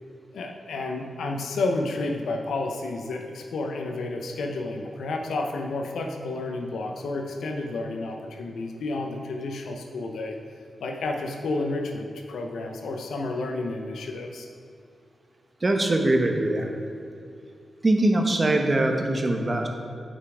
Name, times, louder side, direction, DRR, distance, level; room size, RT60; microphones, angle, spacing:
voice 1, 0.3-10.3 10.8-14.5, left 2 dB, 85° left, 3 dB, 0.8 m, -31 dB
voice 2, 15.6-16.7 17.8-19.7, right 2 dB, 35° right, 3 dB, 1.1 m, -22 dB
8.3 x 5.6 x 4.9 m, 2.5 s
cardioid pair, 55°, 0 cm